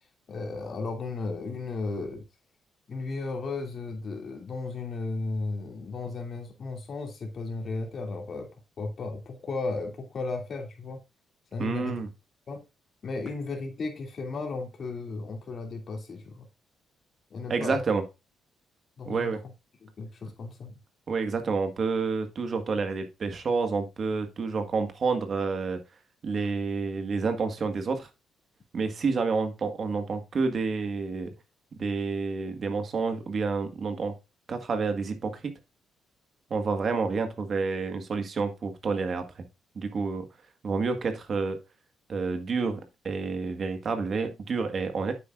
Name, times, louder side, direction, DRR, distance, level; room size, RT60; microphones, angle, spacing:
voice 1, 0.3-2.2 2.9-8.5 8.8-11.0 11.5-12.0 12.5-12.6 13.0-16.5 17.3-17.8 19.0-19.3 19.8-20.7, left 3 dB, 50° left, 2.7 m, -35 dB
voice 2, 11.6-12.1 17.5-18.0 19.1-19.4 21.1-25.8 26.2-28.1 28.7-31.3 31.8-34.1 34.5-35.5 36.5-39.2 39.7-40.2 40.6-41.6 42.1-45.1, right 4 dB, 50° right, 1.6 m, -29 dB
9.2 x 7.8 x 2.5 m
cardioid pair, 90°, 0 cm